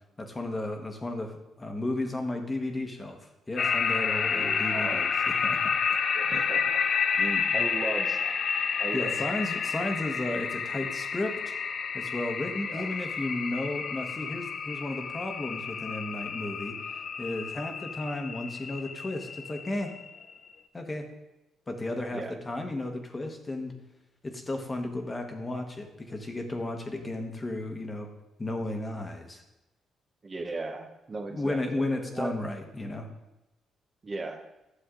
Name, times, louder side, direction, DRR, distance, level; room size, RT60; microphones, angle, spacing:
voice 1, 0.2-5.6 8.9-11.6 11.9-19.9 20.7-21.1 21.7-23.7 24.2-28.1 28.4-29.4 31.3-33.1, left 2 dB, 20° left, 4 dB, 1.3 m, -34 dB
sound 1, 3.6-20.3, left 6 dB, 55° left, 0.6 m, -30 dB
voice 2, 4.2-5.1 6.1-6.8 7.1-8.4 8.8-9.1 12.7-12.9 22.1-22.4 30.2-32.3 34.0-34.5, right 3 dB, 30° right, 4 dB, 0.9 m, -37 dB
9.8 x 6.9 x 3.8 m, 0.96 s
cardioid pair, 90°, 0 cm